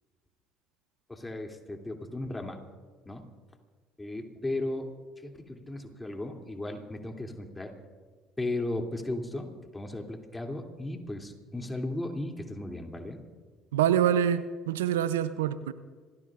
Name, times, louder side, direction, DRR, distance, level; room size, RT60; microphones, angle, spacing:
voice 1, 1.1-2.6 3.0-3.2 4.0-4.9 5.2-7.7 8.4-13.2, left 2 dB, 15° left, 2 dB, 2.8 m, -36 dB
voice 2, 13.7-15.7, right 9 dB, 85° right, 14 dB, 0.6 m, -26 dB
26.5 x 18.5 x 2.5 m, 1.5 s
hypercardioid pair, 60°, 0 cm